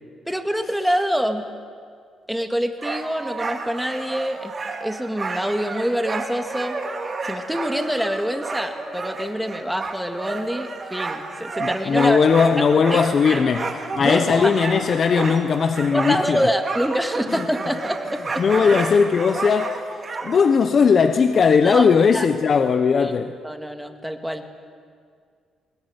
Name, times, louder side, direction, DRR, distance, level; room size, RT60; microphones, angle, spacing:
voice 1, 0.3-1.4 2.3-4.5 4.8-6.8 7.2-12.2 12.6-13.4 14.0-14.5 15.9-18.4 20.2-20.3 21.6-21.9 22.1-22.3 23.0-23.1 23.4-24.4, equal, ahead, 2.1 m, -26 dB
sound 1, 2.8-20.4, right 3 dB, 35° right, 3.2 m, -31 dB
voice 2, 11.6-16.5 17.3-17.4 18.4-19.7 20.2-23.3, left 6 dB, 50° left, 1.0 m, -18 dB
21.5 x 19.0 x 9.9 m
cardioid pair, 90°, 0 cm